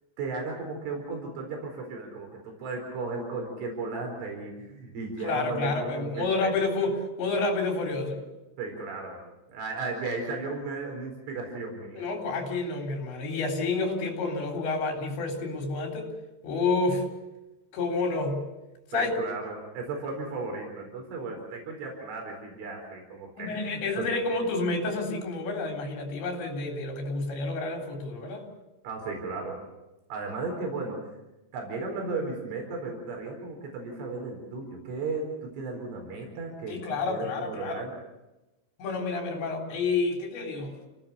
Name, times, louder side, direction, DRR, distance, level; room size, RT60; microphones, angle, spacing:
voice 1, 0.2-6.5 8.6-9.2 9.5-12.1 18.9-24.1 28.8-29.6 30.1-31.1 31.5-36.8 37.1-37.9, right 3 dB, 85° right, 1 dB, 6.9 m, -35 dB
voice 2, 5.2-8.2 12.0-16.1 16.4-17.1 17.7-18.4 18.9-19.1 23.4-28.5 36.7-37.8 38.8-40.7, left 3 dB, 70° left, 1 dB, 6.1 m, -29 dB
28.5 x 18.0 x 7.0 m, 1.0 s
omnidirectional pair, 5.4 m